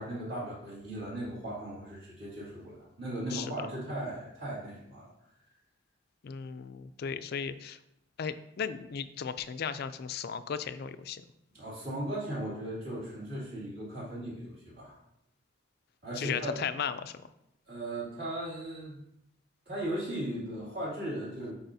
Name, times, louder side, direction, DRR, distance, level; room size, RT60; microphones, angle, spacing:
voice 1, 0.0-5.1 11.5-15.0 16.0-16.6 17.7-19.0 19.7-21.5, right 1 dB, 50° right, -8 dB, 2.5 m, -37 dB
voice 2, 6.2-7.8 8.2-11.2 16.2-17.1, left 7 dB, 50° left, 11 dB, 0.3 m, -36 dB
8.8 x 4.2 x 2.7 m, 0.80 s
head